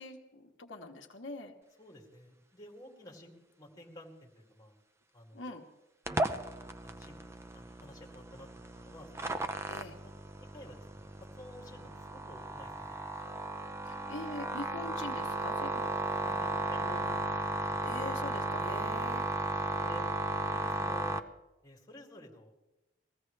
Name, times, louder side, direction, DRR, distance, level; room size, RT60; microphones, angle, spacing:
voice 1, 0.0-1.5 5.3-5.6 9.6-10.0 13.9-17.2 17.8-19.3, left 2 dB, 80° left, 2 dB, 1.2 m, -44 dB
voice 2, 1.8-4.7 5.1-5.5 6.1-6.5 6.8-7.2 7.5-9.4 10.4-13.4 16.4-17.0 17.7-17.8 19.7-20.1 20.5-21.2 21.6-22.5, left 1 dB, 20° left, -1 dB, 2.4 m, -52 dB
sound 1, 6.1-21.2, right 2 dB, 15° right, 0.6 m, -35 dB
21.0 x 15.5 x 3.3 m, 1.0 s
head